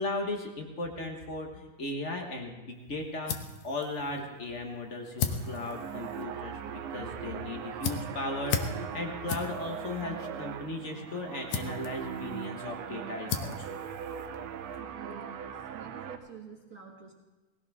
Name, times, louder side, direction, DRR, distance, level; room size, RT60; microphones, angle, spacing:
voice 1, 0.0-3.4 3.6-13.7, left 2 dB, 50° left, 2 dB, 0.8 m, -37 dB
sound 1, 2.7-14.8, left 6 dB, 70° left, 2.0 m, -39 dB
sound 2, 5.1-16.2, right 8 dB, 70° right, 1.8 m, -40 dB
voice 2, 14.8-17.1, right 6 dB, 40° right, 0 dB, 1.4 m, -48 dB
19.5 x 17.0 x 3.6 m, 1.2 s
omnidirectional pair, 3.6 m